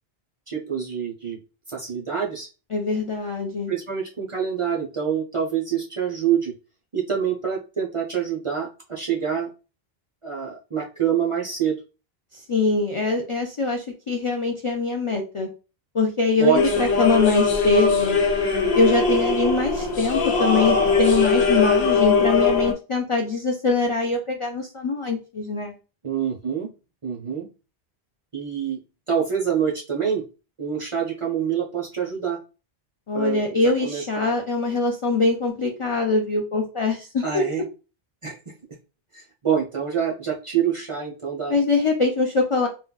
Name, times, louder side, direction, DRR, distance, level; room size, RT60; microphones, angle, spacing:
voice 1, 0.5-1.4 1.7-2.5 3.7-6.5 6.9-9.5 10.2-11.8 16.4-16.6 26.0-26.7 27.0-27.5 28.3-28.8 29.1-30.2 30.6-32.4 33.1-34.3 37.2-37.6 38.2-38.5 39.1-41.6, right 8 dB, 40° right, -2 dB, 0.5 m, -26 dB
voice 2, 2.7-3.7 12.5-15.5 15.9-18.2 18.7-25.7 33.1-37.4 41.5-42.7, left 3 dB, 50° left, 1 dB, 0.3 m, -23 dB
sound 1, 16.6-22.7, left 4 dB, 80° left, 0.9 m, -21 dB
3.6 x 2.2 x 2.2 m, 0.32 s
omnidirectional pair, 1.1 m